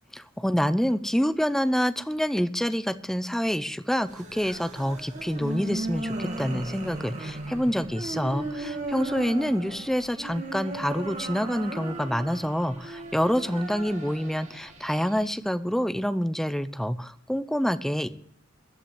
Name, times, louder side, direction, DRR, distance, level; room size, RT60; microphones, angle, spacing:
voice 1, 0.2-18.1, equal, ahead, 13 dB, 0.6 m, -27 dB
sound 1, 4.0-15.3, right 1 dB, 35° right, 2.2 m, -36 dB
14.0 x 5.7 x 9.0 m, 0.67 s
head